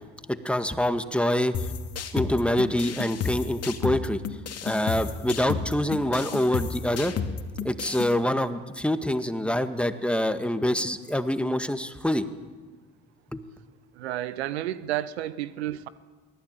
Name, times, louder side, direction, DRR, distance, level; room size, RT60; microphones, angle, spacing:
voice 1, 0.3-1.5 2.1-4.2 4.6-7.1 7.6-12.3 13.3-13.4, left 1 dB, 5° left, 9 dB, 1.9 m, -25 dB
sound 1, 1.5-8.1, left 6 dB, 50° left, 2.3 m, -32 dB
voice 2, 14.0-15.9, right 13 dB, 90° right, 15 dB, 0.9 m, -31 dB
23.5 x 18.5 x 9.1 m, 1.4 s
hypercardioid pair, 60°, 31 cm